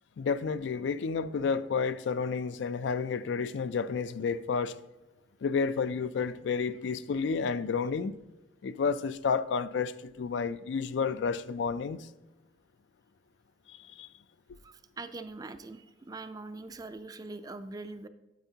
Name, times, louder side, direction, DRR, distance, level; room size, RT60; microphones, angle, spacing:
voice 1, 0.2-4.7 5.4-8.1 8.6-12.1 13.7-14.1, left 5 dB, 70° left, 0.3 m, -31 dB
voice 2, 14.6-18.1, right 3 dB, 20° right, 0.4 m, -42 dB
9.0 x 8.1 x 2.8 m
head